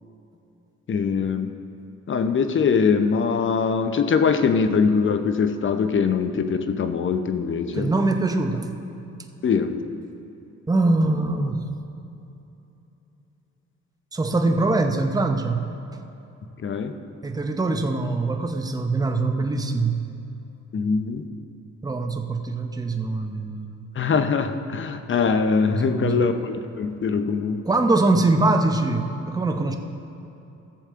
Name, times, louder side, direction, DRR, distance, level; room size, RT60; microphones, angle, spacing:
voice 1, 0.9-1.5 2.1-7.9 9.4-9.7 16.6-16.9 20.7-21.2 24.0-27.6, left 5 dB, 40° left, 9 dB, 0.7 m, -22 dB
voice 2, 7.7-8.7 10.7-11.7 14.1-15.7 17.2-20.1 21.8-23.8 25.7-26.3 27.6-29.8, right 2 dB, 10° right, 5 dB, 0.8 m, -23 dB
14.5 x 7.2 x 3.7 m, 2.9 s
cardioid pair, 90°, 30 cm